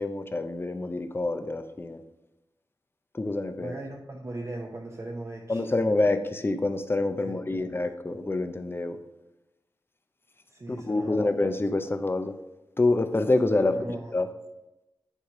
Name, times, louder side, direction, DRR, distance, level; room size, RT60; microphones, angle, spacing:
voice 1, 0.0-2.0 3.1-3.7 5.5-9.0 10.7-12.3 12.8-13.8 14.1-14.3, left 2 dB, 25° left, 8 dB, 0.6 m, -26 dB
voice 2, 3.6-5.6 7.2-7.7 10.5-11.4 13.7-14.1, right 2 dB, 35° right, 0 dB, 0.7 m, -38 dB
9.7 x 3.2 x 5.1 m, 0.95 s
wide cardioid pair, 90°, 9 cm